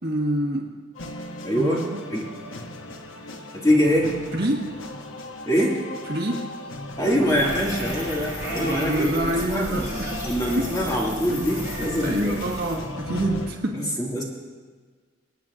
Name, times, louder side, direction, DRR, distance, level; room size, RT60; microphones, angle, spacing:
voice 1, 0.0-0.7 1.6-1.8 4.3-4.7 6.1-6.5 8.6-10.1 10.5-10.7 11.1-11.2 11.8-13.9, right 1 dB, 55° right, 1 dB, 1.5 m, -27 dB
sound 1, 1.0-13.5, left 1 dB, 75° left, 0.9 m, -37 dB
voice 2, 1.4-2.3 3.5-4.1 5.5-5.8 7.0-9.2 9.5-12.4 13.7-14.2, equal, 20° left, -3 dB, 2.1 m, -24 dB
sound 2, 7.3-12.8, equal, 40° left, 2.9 m, -33 dB
26.0 x 8.9 x 2.5 m, 1.5 s
head